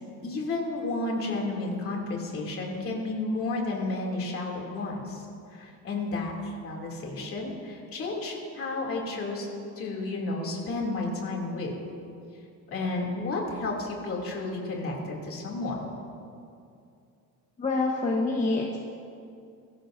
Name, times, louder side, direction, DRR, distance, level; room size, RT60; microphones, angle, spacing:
voice 1, 0.2-5.2 5.5-6.3 6.6-9.5 9.8-11.8 12.7-15.8, left 2 dB, 40° left, -1 dB, 2.7 m, -32 dB
voice 2, 17.6-18.8, left 3 dB, 20° left, -2 dB, 1.1 m, -26 dB
23.0 x 14.0 x 2.6 m, 2.5 s
cardioid pair, 160°, 34 cm